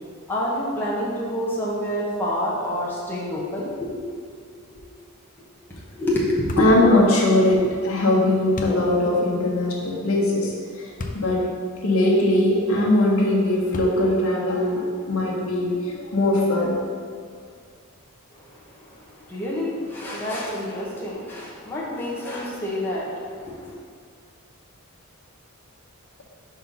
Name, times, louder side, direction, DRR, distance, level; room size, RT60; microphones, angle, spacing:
voice 1, 0.3-4.1 4.3-4.4 4.7-4.8 5.7-6.7 7.3-7.7 18.3-23.8, left 1 dB, 10° left, -7 dB, 1.1 m, -28 dB
sound 1, 6.5-6.8 8.6-8.8 11.0-11.3 11.9-12.0 13.7-14.2, left 2 dB, 35° left, 0.6 m, -33 dB
voice 2, 6.6-10.8 11.1-11.4 11.8-16.7, left 1 dB, 70° left, -4 dB, 1.3 m, -20 dB
5.6 x 4.4 x 5.3 m, 2.1 s
head